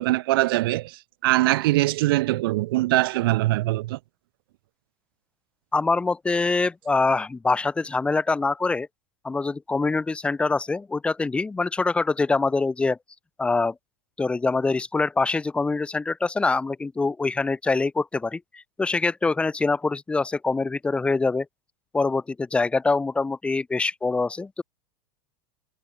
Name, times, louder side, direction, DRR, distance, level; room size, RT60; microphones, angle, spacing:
voice 1, 0.0-4.0, right 18 dB, 70° right, 3.7 m, -22 dB
voice 2, 5.7-8.9 9.2-13.0 13.4-13.7 14.2-21.4 21.9-24.6, left 3 dB, 10° left, 1.7 m, -24 dB
supercardioid pair, 155°, 13 cm